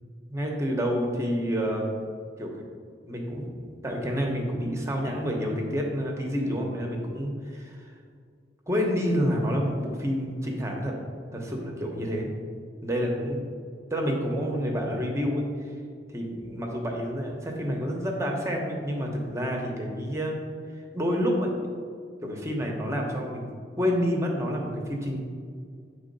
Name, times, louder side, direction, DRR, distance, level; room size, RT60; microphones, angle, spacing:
voice 1, 0.3-1.9 2.4-2.6 3.0-7.9 8.7-10.9 11.3-12.3 12.8-13.4 13.9-15.4 16.1-20.4 20.9-21.5 22.2-23.5 23.8-25.2, equal, 15° right, 0 dB, 1.0 m, -28 dB
8.7 x 3.6 x 5.4 m, 2.1 s
head